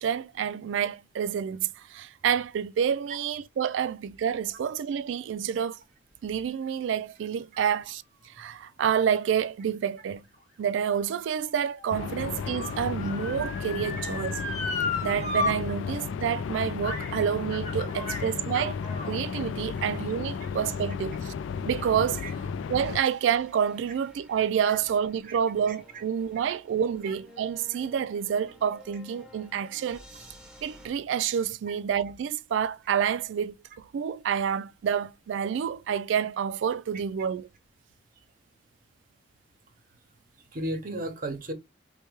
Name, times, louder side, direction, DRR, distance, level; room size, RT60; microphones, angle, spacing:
voice 1, 0.0-5.8 6.2-8.0 8.4-10.2 10.6-14.4 15.0-18.8 19.1-21.3 21.7-30.0 30.6-37.5, right 8 dB, 75° right, 0.3 m, -28 dB
Motor vehicle (road) / Siren, 10.3-15.5 15.9-16.0 16.8-17.2 17.5-19.2 19.9-20.0, left 2 dB, 40° left, 1.1 m, -34 dB
sound 1, 11.9-23.0, left 6 dB, 85° left, 0.3 m, -34 dB
sound 2, 22.8-30.9, equal, 5° right, 0.9 m, -53 dB
voice 2, 40.5-41.5, right 1 dB, 50° right, 0.8 m, -34 dB
4.4 x 2.2 x 3.0 m
head